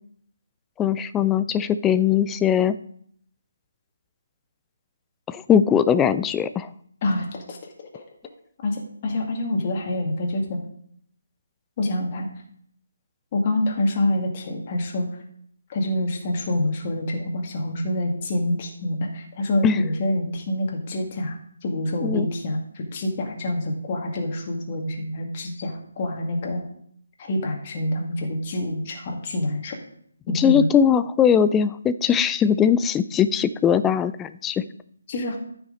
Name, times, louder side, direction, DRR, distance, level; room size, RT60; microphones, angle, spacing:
voice 1, 0.8-2.7 5.3-6.7 19.6-19.8 22.0-22.3 30.3-34.6, left 8 dB, 10° left, 12 dB, 0.4 m, -20 dB
voice 2, 7.0-7.6 7.9-8.0 8.6-10.6 11.8-12.3 13.3-15.1 15.7-21.4 21.6-26.7 27.2-29.8 30.3-30.7 35.1-35.4, left 1 dB, 30° left, 0 dB, 2.1 m, -26 dB
14.0 x 5.9 x 3.9 m, 0.66 s
figure-of-eight pair, 150°, 0 cm